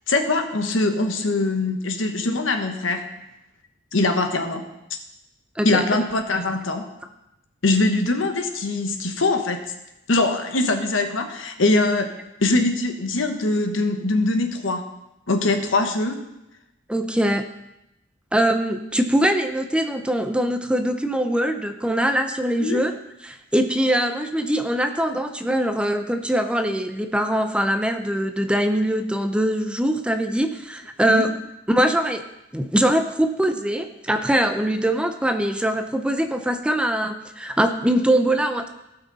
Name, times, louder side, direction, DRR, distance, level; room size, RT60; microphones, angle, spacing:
voice 1, 0.1-3.1 3.9-4.6 5.6-6.8 7.6-9.6 10.1-12.1 12.4-14.8 15.3-16.3 22.6-22.8 31.1-31.3, left 2 dB, 70° left, 5 dB, 1.2 m, -22 dB
voice 2, 16.9-17.4 18.3-22.9 23.2-31.3 31.7-32.2 32.5-38.7, right 1 dB, 5° right, 7 dB, 0.5 m, -22 dB
16.5 x 6.0 x 4.1 m, 0.91 s
head